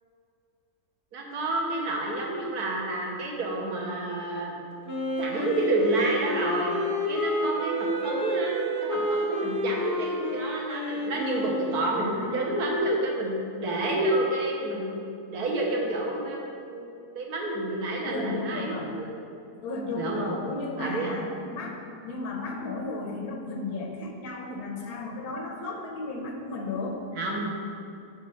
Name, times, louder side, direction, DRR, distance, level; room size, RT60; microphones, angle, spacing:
voice 1, 1.1-4.5 5.2-6.8 7.1-15.0 15.3-16.8 17.1-19.1 19.9-20.4 20.8-21.2 27.1-27.5, right 2 dB, 80° right, -1 dB, 1.6 m, -29 dB
Wind instrument woodwind instrument, 4.8-12.0, left 1 dB, 35° left, 1.0 m, -30 dB
voice 2, 11.9-12.5 18.0-18.9 19.6-27.0, left 3 dB, 80° left, 2 dB, 1.4 m, -34 dB
6.3 x 5.3 x 5.4 m, 2.6 s
omnidirectional pair, 1.6 m